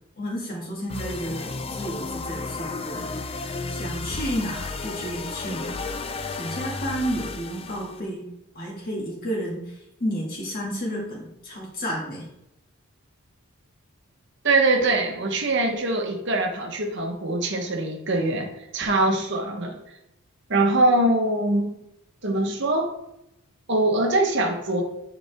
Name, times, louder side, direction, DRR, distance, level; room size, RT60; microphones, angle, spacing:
voice 1, 0.2-3.2 3.7-8.2 8.6-12.3, equal, 40° left, -3 dB, 2.0 m, -31 dB
sound 1, 0.9-8.0, left 3 dB, 25° left, 0.4 m, -33 dB
voice 2, 14.4-19.8 20.5-21.7 22.2-22.9 23.7-24.8, right 2 dB, 50° right, 2 dB, 1.0 m, -23 dB
9.1 x 4.2 x 3.5 m, 0.85 s
head